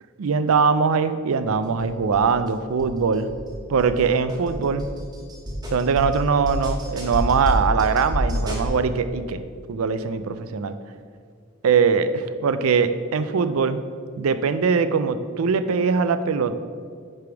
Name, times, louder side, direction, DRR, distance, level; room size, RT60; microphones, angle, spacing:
voice 1, 0.2-3.3 3.7-4.9 5.7-9.4 9.7-10.8 11.6-13.8 14.2-16.5, right 5 dB, 80° right, 11 dB, 0.4 m, -21 dB
sound 1, 1.8-2.5 2.8-2.9 3.3-8.7, equal, 20° right, 1.2 m, -28 dB
9.7 x 3.5 x 4.6 m, 2.1 s
head